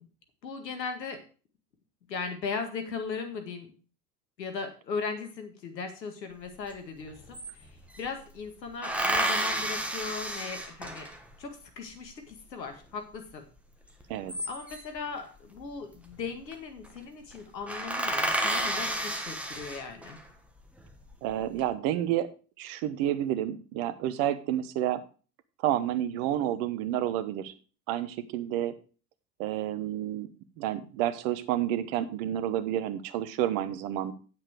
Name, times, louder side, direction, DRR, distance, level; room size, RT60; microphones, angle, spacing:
voice 1, 0.4-1.2 2.1-3.7 4.4-11.1 11.4-13.5 14.5-20.2, left 5 dB, 80° left, 6 dB, 2.0 m, -38 dB
sound 1, 6.7-6.8 7.0-8.1 8.8-11.3 14.0-15.0 16.1-16.5 16.8-17.0 17.3-17.4 17.7-20.2 20.8-21.4, right 1 dB, 5° right, 1.5 m, -31 dB
voice 2, 21.2-22.3 22.6-25.0 25.6-27.5 27.9-28.7 29.4-30.3 30.6-34.1, right 12 dB, 50° right, 13 dB, 1.1 m, -30 dB
8.8 x 7.5 x 4.7 m, 0.37 s
figure-of-eight pair, 80°, 50 cm